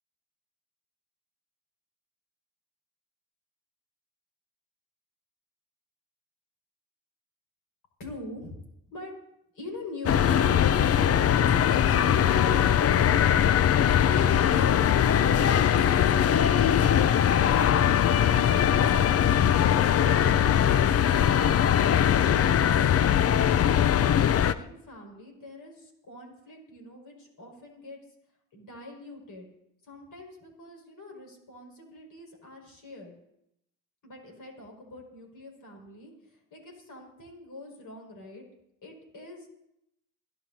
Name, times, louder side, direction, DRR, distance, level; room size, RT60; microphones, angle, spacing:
voice 1, 8.0-8.6 8.9-9.1 9.5-12.5 24.0-28.0 28.5-29.5 29.9-33.1 34.0-36.1 36.5-38.4 38.8-39.5, left 2 dB, 55° left, 0 dB, 5.5 m, -43 dB
sound 1, 10.1-24.5, left 9 dB, 40° left, 0.6 m, -21 dB
28.0 x 10.5 x 2.8 m, 0.80 s
hypercardioid pair, 55°, 39 cm